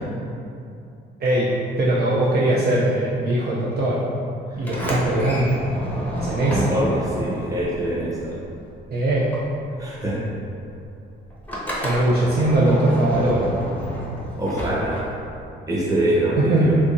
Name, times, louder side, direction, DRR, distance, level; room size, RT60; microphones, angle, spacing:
voice 1, 1.8-4.0 4.6-5.6 6.1-6.6 8.9-9.3 11.8-13.5 16.4-16.7, right 1 dB, 50° right, -6 dB, 0.5 m, -20 dB
voice 2, 4.5-5.3 6.4-8.4 9.8-10.2 11.7-11.9 14.4-15.0 15.7-16.8, right 1 dB, 15° right, -6 dB, 1.0 m, -25 dB
Sliding door, 4.6-8.8 9.1-15.5, equal, 10° left, 0.7 m, -30 dB
3.6 x 2.9 x 2.6 m, 2.6 s
cardioid pair, 90°, 20 cm